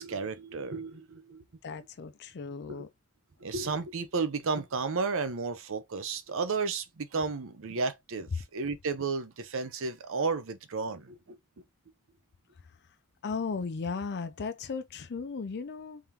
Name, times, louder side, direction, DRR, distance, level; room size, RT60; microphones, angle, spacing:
voice 1, 0.0-1.4 2.7-2.9 3.4-11.4, right 4 dB, 65° right, 0.7 m, -33 dB
voice 2, 1.6-2.9 13.2-16.0, left 5 dB, 50° left, 0.5 m, -36 dB
3.6 x 3.5 x 2.9 m
head